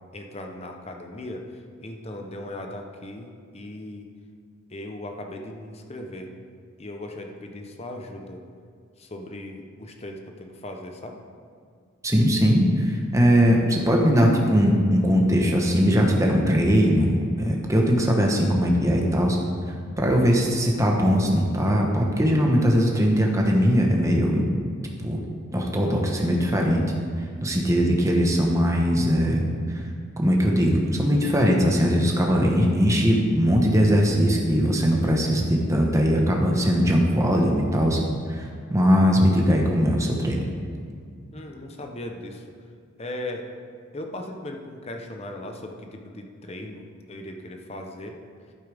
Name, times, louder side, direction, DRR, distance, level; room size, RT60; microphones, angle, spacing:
voice 1, 0.1-4.1 4.7-6.3 6.8-8.4 9.0-11.2 41.3-42.5 43.0-43.5 43.9-48.2, left 1 dB, 30° left, 3 dB, 0.8 m, -38 dB
voice 2, 12.0-19.4 20.0-24.4 25.0-25.2 25.5-26.8 27.2-29.4 29.7-29.9 30.2-38.0 38.3-40.4, equal, 15° right, 0 dB, 1.1 m, -20 dB
11.5 x 8.8 x 3.5 m, 2.2 s
head